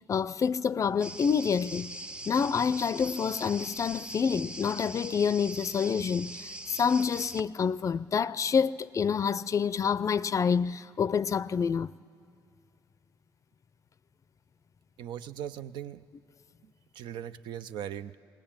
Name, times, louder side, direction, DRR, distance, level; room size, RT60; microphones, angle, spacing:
voice 1, 0.1-1.9 2.3-11.9, left 6 dB, 45° left, 0.4 m, -27 dB
sound 1, 1.0-7.4, right 1 dB, 10° right, 0.6 m, -42 dB
voice 2, 15.0-16.0 16.9-18.1, right 10 dB, 80° right, 0.5 m, -39 dB
19.0 x 18.5 x 8.8 m
supercardioid pair, 70°, 8 cm